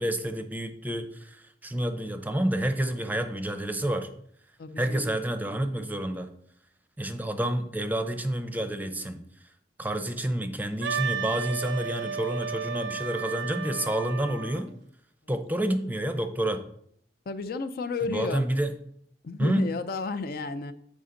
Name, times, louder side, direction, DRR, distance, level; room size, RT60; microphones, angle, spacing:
voice 1, 0.0-4.1 4.8-6.3 7.0-9.2 9.8-14.7 15.3-16.6 18.1-18.7 19.4-19.7, right 1 dB, 10° right, 0.6 m, -29 dB
voice 2, 4.6-5.2 17.3-18.4 19.2-20.7, left 3 dB, 55° left, 0.4 m, -32 dB
Wind instrument woodwind instrument, 10.8-14.6, right 6 dB, 85° right, 0.4 m, -33 dB
8.1 x 5.1 x 3.8 m
head